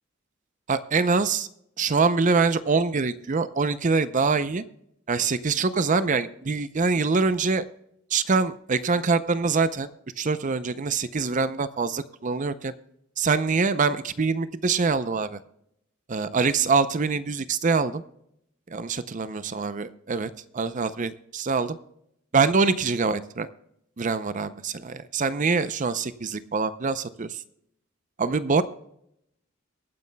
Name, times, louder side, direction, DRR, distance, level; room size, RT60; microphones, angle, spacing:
voice 1, 0.7-1.5 1.8-4.6 5.1-7.6 8.1-9.9 10.2-12.7 13.2-15.4 16.1-18.0 18.7-21.8 22.3-23.5 24.0-27.4 28.2-28.6, right 4 dB, 40° right, 13 dB, 0.5 m, -24 dB
23.5 x 9.5 x 2.2 m, 0.75 s
head